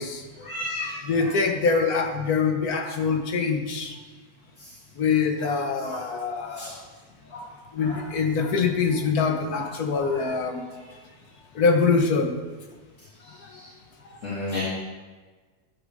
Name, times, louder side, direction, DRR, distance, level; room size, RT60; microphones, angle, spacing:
voice 1, 0.4-1.3 2.7-2.9 5.4-5.6 5.8-6.0 6.4-6.7 7.3-7.4 7.8-8.0 8.4-8.5 9.5-10.3 13.5-13.6 14.2-14.6, left 2 dB, 55° left, -8 dB, 2.8 m, -35 dB
voice 2, 1.0-3.9 5.0-6.8 7.7-10.6 11.6-12.3, left 5 dB, 90° left, 4 dB, 1.7 m, -24 dB
13.0 x 10.5 x 3.7 m, 1.3 s
omnidirectional pair, 1.5 m